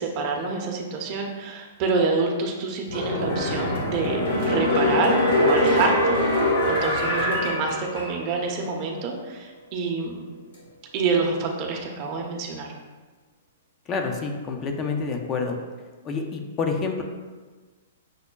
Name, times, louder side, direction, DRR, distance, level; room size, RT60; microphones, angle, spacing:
voice 1, 0.0-5.2 5.4-6.4 6.7-10.2 10.9-12.7, right 4 dB, 40° right, 1 dB, 0.6 m, -27 dB
sound 1, 2.9-8.4 8.8-8.9, left 1 dB, 65° left, 1.3 m, -23 dB
voice 2, 13.9-15.6 16.0-17.0, left 4 dB, 30° left, 3 dB, 0.4 m, -28 dB
6.3 x 2.1 x 2.2 m, 1.3 s
hypercardioid pair, 120°, 0 cm